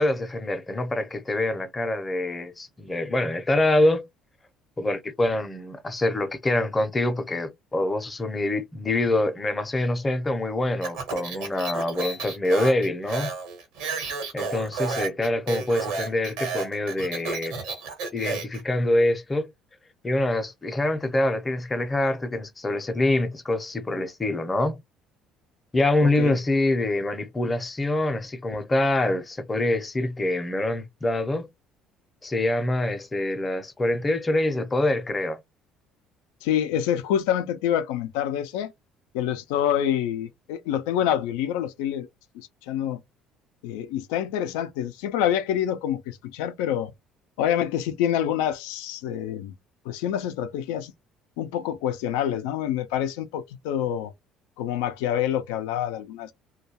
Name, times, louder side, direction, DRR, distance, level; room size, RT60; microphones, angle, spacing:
voice 1, 0.0-4.1 4.8-13.3 14.3-17.6 18.1-19.5 20.0-24.8 25.7-31.5 32.2-35.4, left 1 dB, 20° left, 0.6 m, -25 dB
Speech, 10.8-18.6, right 4 dB, 85° right, 1.0 m, -32 dB
voice 2, 26.0-26.4 36.4-38.7 39.1-42.1 42.3-43.0 43.6-46.9 47.4-49.5 49.9-50.9 51.4-54.1 54.6-56.3, left 10 dB, 90° left, 0.4 m, -27 dB
2.2 x 2.2 x 2.7 m
supercardioid pair, 90°, 0 cm